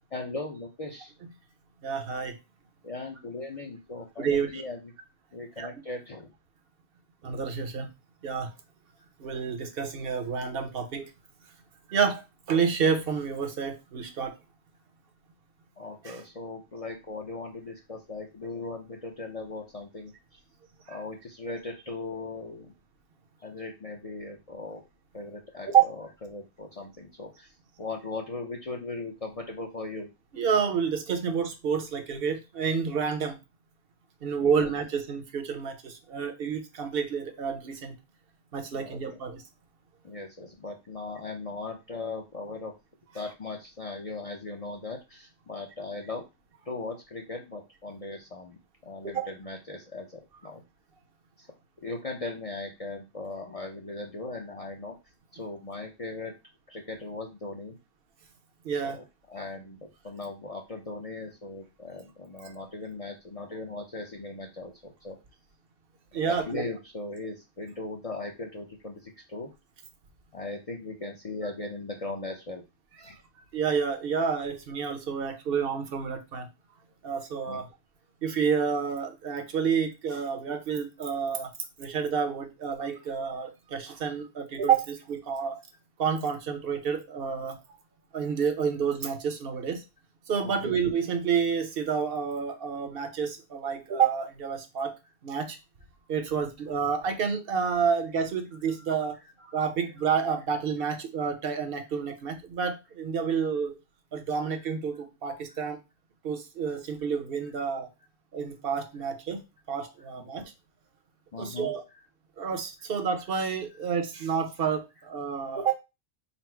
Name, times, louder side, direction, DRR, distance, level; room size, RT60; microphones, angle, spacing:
voice 1, 0.1-1.1 2.8-4.9 5.3-6.3 15.8-20.4 20.9-22.7 23.4-24.8 25.1-27.5 27.8-30.1 34.4-34.7 38.7-39.2 40.0-42.7 43.1-46.2 46.7-50.6 51.4-51.5 51.8-54.9 55.3-56.3 56.7-57.8 58.8-65.2 66.1-69.5 70.3-72.6 73.0-73.2 77.5-77.6 90.4-90.8 98.7-99.1 105.5-105.6 110.1-110.3 111.3-112.0, left 3 dB, 40° left, 2 dB, 0.6 m, -38 dB
voice 2, 1.8-2.3 4.2-4.6 5.6-5.7 7.2-7.9 8.2-8.5 9.2-11.1 11.9-14.4 16.0-16.2 20.9-21.0 25.7-25.8 30.3-33.4 34.2-37.9 38.5-39.4 49.0-49.3 58.6-59.0 62.4-62.5 66.1-66.6 73.0-73.1 73.5-76.5 77.0-77.7 78.2-81.5 81.8-85.6 86.0-87.6 88.1-89.8 90.3-94.9 95.2-95.6 96.1-99.2 99.5-103.8 104.1-105.8 106.2-107.9 108.3-109.4 109.7-110.5 111.4-111.8 112.4-115.7, right 6 dB, 60° right, 6 dB, 0.9 m, -29 dB
4.1 x 2.0 x 4.4 m, 0.25 s
omnidirectional pair, 1.1 m